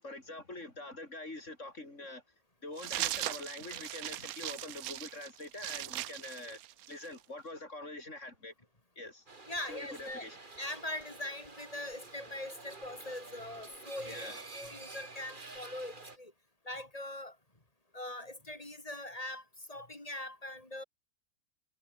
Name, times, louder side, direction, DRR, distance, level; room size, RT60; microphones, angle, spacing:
voice 1, 0.0-2.2 2.6-6.6 6.9-8.5 9.0-9.3 9.7-10.4 14.0-14.4, left 2 dB, 50° left, 4.9 m, -45 dB
sound 1, 2.8-7.2, right 14 dB, 75° right, 1.0 m, -39 dB
sound 2, 9.3-16.2, right 3 dB, 30° right, 2.4 m, -49 dB
voice 2, 9.5-10.2 10.6-16.3 16.7-17.4 17.9-20.8, left 1 dB, 25° left, 3.5 m, -42 dB
omnidirectional pair, 1.6 m